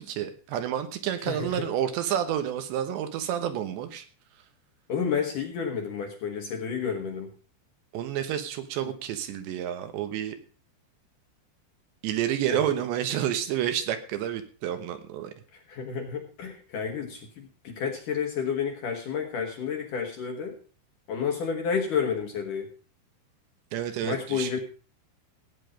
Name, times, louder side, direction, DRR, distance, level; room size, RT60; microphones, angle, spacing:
voice 1, 0.0-4.0 7.9-10.4 12.0-15.3 23.7-24.6, right 10 dB, 75° right, 9 dB, 3.3 m, -29 dB
voice 2, 1.3-1.7 4.9-7.3 12.5-12.6 15.5-20.6 21.1-22.7 24.0-24.6, left 6 dB, 60° left, 2 dB, 2.5 m, -30 dB
16.0 x 9.1 x 5.1 m, 0.39 s
omnidirectional pair, 5.4 m